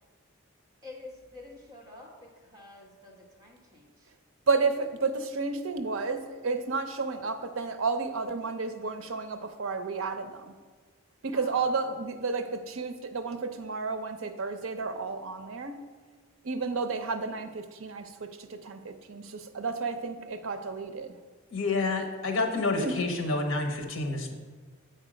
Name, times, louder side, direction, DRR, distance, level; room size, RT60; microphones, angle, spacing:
voice 1, 0.8-4.1 11.3-11.9, left 2 dB, 20° right, -3 dB, 1.3 m, -49 dB
voice 2, 4.5-10.5 11.2-15.8 16.4-21.2 22.8-23.0, right 4 dB, 75° right, 8 dB, 0.6 m, -31 dB
voice 3, 21.5-24.3, left 3 dB, 70° left, 4 dB, 0.9 m, -29 dB
7.8 x 4.4 x 5.0 m, 1.5 s
head